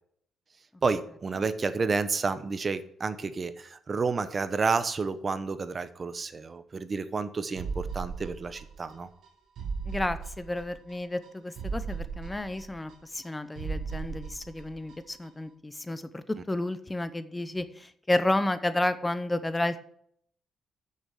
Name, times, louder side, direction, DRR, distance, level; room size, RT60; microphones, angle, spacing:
voice 1, 0.8-9.1, right 4 dB, 35° right, 12 dB, 0.9 m, -30 dB
sound 1, 7.6-8.9 9.2-9.3 9.6-10.9 11.2-11.3 11.6-13.3 13.6-14.9 15.2-15.3, right 5 dB, 70° right, 1.8 m, -37 dB
voice 2, 9.9-19.8, left 1 dB, 15° left, 13 dB, 0.7 m, -31 dB
8.8 x 6.7 x 6.4 m, 0.66 s
cardioid pair, 90°, 0 cm